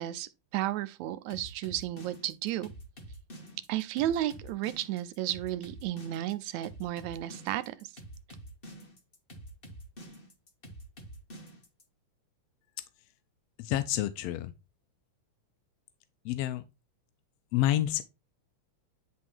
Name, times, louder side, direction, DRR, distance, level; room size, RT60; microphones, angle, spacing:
voice 1, 0.0-2.7 3.7-7.9, right 13 dB, 80° right, 1.8 m, -33 dB
sound 1, 1.3-11.8, equal, 25° left, 1.2 m, -47 dB
voice 2, 13.6-14.5 16.2-16.6 17.5-18.0, left 13 dB, 80° left, 1.5 m, -28 dB
10.5 x 3.7 x 4.5 m
omnidirectional pair, 3.5 m